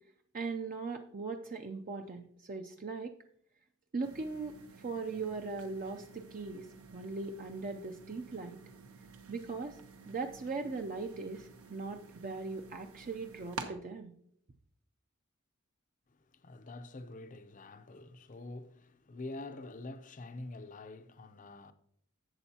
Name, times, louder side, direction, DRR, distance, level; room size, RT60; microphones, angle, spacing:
voice 1, 0.3-3.1 3.9-4.6 4.8-6.7 6.9-8.6 9.3-9.8 10.1-14.1, right 4 dB, 40° right, 0.5 m, -39 dB
sound 1, 4.0-13.7, right 4 dB, 90° right, 1.1 m, -51 dB
voice 2, 16.1-21.7, left 2 dB, 40° left, 0.6 m, -46 dB
11.0 x 8.0 x 2.8 m
head